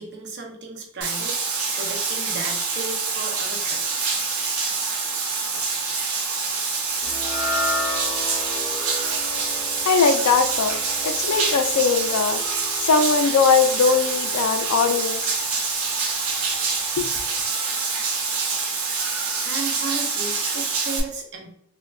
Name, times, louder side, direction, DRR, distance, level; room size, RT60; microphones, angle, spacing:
voice 1, 0.0-4.1 19.4-21.5, right 3 dB, 50° right, 2 dB, 0.5 m, -35 dB
Bathtub (filling or washing), 1.0-21.0, right 4 dB, 85° right, 0.7 m, -26 dB
sound 1, 7.0-13.4, left 2 dB, 15° left, 0.4 m, -33 dB
voice 2, 9.9-10.8 11.0-12.4 12.8-15.4 17.0-17.1, left 5 dB, 85° left, 7 dB, 0.4 m, -20 dB
3.3 x 2.2 x 2.3 m, 0.74 s
head